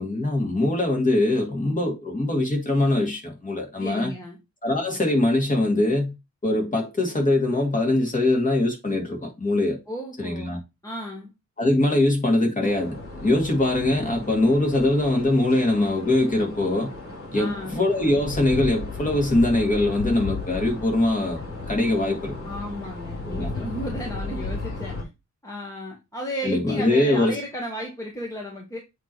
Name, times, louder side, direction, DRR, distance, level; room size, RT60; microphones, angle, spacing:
voice 1, 0.0-4.1 4.6-6.1 6.4-9.8 10.2-10.6 11.6-16.9 17.3-22.5 23.2-23.5 26.4-27.4, left 2 dB, 25° left, 2.1 m, -22 dB
voice 2, 3.8-4.4 9.9-10.6 10.8-11.3 17.3-17.8 22.4-24.9 25.4-28.8, equal, 10° left, 1.4 m, -34 dB
sound 1, 12.6-25.0, left 2 dB, 45° left, 3.4 m, -35 dB
8.1 x 3.1 x 4.3 m
wide cardioid pair, 150°, 30 cm